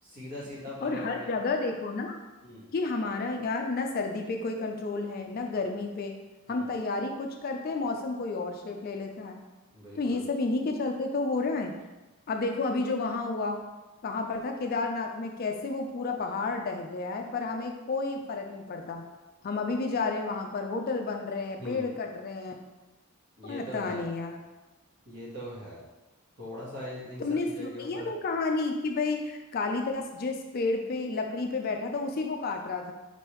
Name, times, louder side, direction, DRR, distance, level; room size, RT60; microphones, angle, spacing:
voice 1, 0.0-1.3 2.4-2.7 6.5-6.7 9.7-10.2 21.6-21.9 23.4-24.0 25.0-25.8 26.4-28.1, equal, 50° right, -7 dB, 1.5 m, -41 dB
voice 2, 0.8-2.2 2.7-6.2 6.5-9.4 9.9-11.7 12.3-13.6 14.0-19.0 19.4-22.5 23.4-24.4 27.2-32.9, left 3 dB, 45° left, 3 dB, 0.3 m, -31 dB
4.4 x 3.3 x 3.0 m, 1.1 s
head